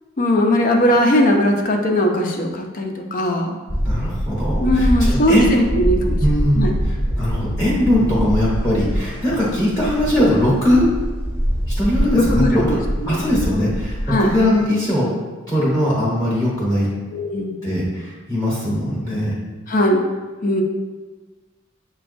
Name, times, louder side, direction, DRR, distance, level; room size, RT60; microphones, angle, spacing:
voice 1, 0.2-3.6 4.6-6.2 6.6-6.7 12.1-13.3 14.1-14.4 17.1-17.6 19.7-20.0 20.4-20.6, equal, 45° left, 2 dB, 0.5 m, -19 dB
sound 1, 3.7-14.7, equal, 10° right, 0.7 m, -24 dB
voice 2, 3.8-5.5 6.2-10.9 11.8-12.8 13.1-15.1 15.5-16.9 17.6-19.3, left 1 dB, 20° left, -8 dB, 0.9 m, -20 dB
6.8 x 2.3 x 2.5 m, 1.3 s
head